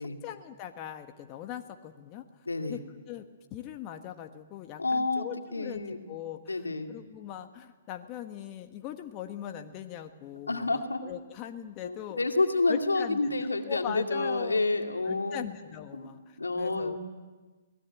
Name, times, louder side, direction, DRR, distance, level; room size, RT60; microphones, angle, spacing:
voice 1, 0.0-2.2 2.7-2.8 3.1-12.2 12.7-14.6 15.1-17.0, left 11 dB, 30° left, 6 dB, 1.4 m, -41 dB
voice 2, 2.5-2.8 4.8-5.3 5.5-6.0 6.5-6.9 10.5-11.0 11.8-15.5 15.9-16.1 16.4-17.0, left 3 dB, 90° left, 4 dB, 2.2 m, -29 dB
23.5 x 19.0 x 9.2 m, 1.3 s
figure-of-eight pair, 125°, 0 cm